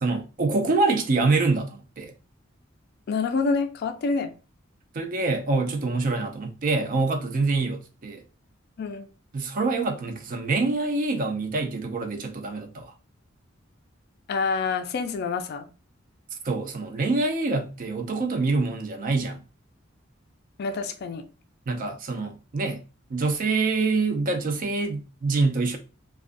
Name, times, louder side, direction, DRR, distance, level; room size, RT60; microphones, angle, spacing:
voice 1, 0.0-2.1 4.9-8.2 9.3-12.9 16.4-19.4 21.7-22.8 23.1-25.8, right 3 dB, 45° right, 0.4 m, -25 dB
voice 2, 3.1-4.3 8.8-9.1 14.3-15.7 20.6-21.2, left 4 dB, 55° left, 0.3 m, -27 dB
2.4 x 2.2 x 2.5 m
head